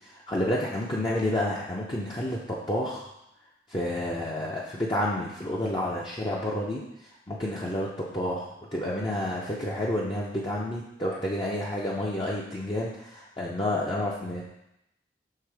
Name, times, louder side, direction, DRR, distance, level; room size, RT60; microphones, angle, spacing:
voice 1, 0.3-3.1 3.7-6.8 7.3-8.5 8.7-14.4, left 1 dB, 25° left, -5 dB, 0.7 m, -29 dB
6.7 x 3.6 x 4.8 m, 0.84 s
head